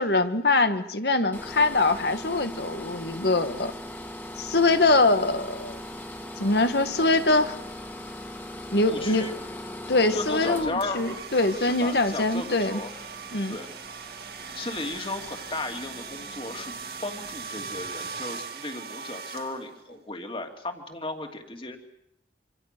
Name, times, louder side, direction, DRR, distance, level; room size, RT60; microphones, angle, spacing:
voice 1, 0.0-3.7 4.4-5.8 6.4-7.6 8.7-9.3 9.9-12.8 13.3-13.6, left 2 dB, 65° left, 9 dB, 1.7 m, -23 dB
sound 1, 1.3-17.3, left 1 dB, 10° left, 2.0 m, -41 dB
voice 2, 8.8-9.3 10.1-11.0 11.6-12.9 13.5-13.7 14.5-16.7 17.0-21.8, left 2 dB, 30° left, 5 dB, 2.6 m, -35 dB
sound 2, 10.8-19.9, right 5 dB, 60° right, 2.1 m, -39 dB
26.5 x 26.5 x 6.8 m, 0.78 s
head